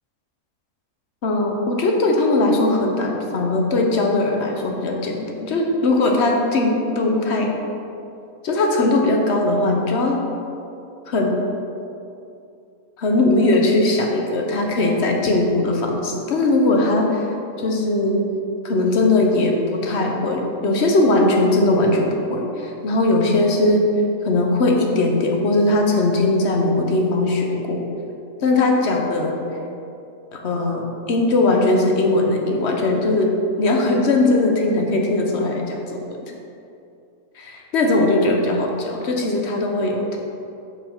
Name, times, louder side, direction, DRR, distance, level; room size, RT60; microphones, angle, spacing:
voice 1, 1.2-7.5 8.4-10.2 11.1-11.4 13.0-17.3 17.6-18.2 18.6-23.8 24.2-27.8 28.4-29.3 30.3-33.3 33.6-36.2 37.7-40.2, left 2 dB, 55° left, 1 dB, 1.0 m, -19 dB
5.1 x 5.1 x 5.6 m, 2.6 s
omnidirectional pair, 1.6 m